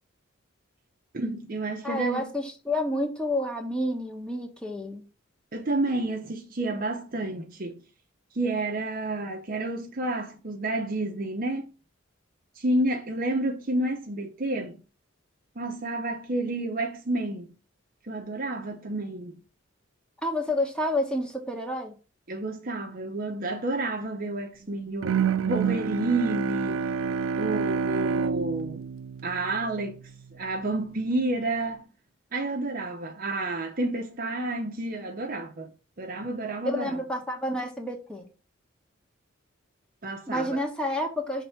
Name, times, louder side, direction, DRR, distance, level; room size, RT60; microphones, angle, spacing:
voice 1, 1.1-2.3 5.5-7.8 8.3-11.7 12.6-14.8 15.6-17.5 18.1-19.4 22.3-25.2 25.5-26.9 27.4-28.8 29.2-31.9 32.3-35.7 36.0-37.0 40.0-40.6, right 2 dB, 45° right, 0.8 m, -30 dB
voice 2, 1.8-5.1 20.2-21.9 36.6-38.3 40.3-41.4, left 1 dB, 5° left, 1.5 m, -29 dB
Bowed string instrument, 25.0-30.1, right 6 dB, 85° right, 0.4 m, -28 dB
5.9 x 3.3 x 5.7 m
head